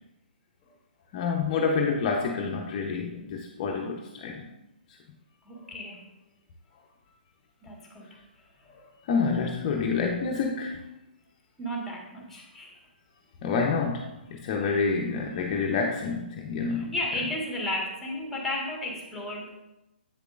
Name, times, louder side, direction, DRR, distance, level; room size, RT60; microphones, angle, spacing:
voice 1, 1.1-4.5 5.6-5.7 8.7-10.8 13.4-16.9, left 5 dB, 35° left, 0.7 m, -28 dB
voice 2, 5.4-6.1 7.6-8.1 11.6-12.8 14.6-14.8 16.7-19.6, left 1 dB, 5° left, 1.6 m, -34 dB
8.3 x 6.6 x 2.5 m
figure-of-eight pair, 130°, 6 cm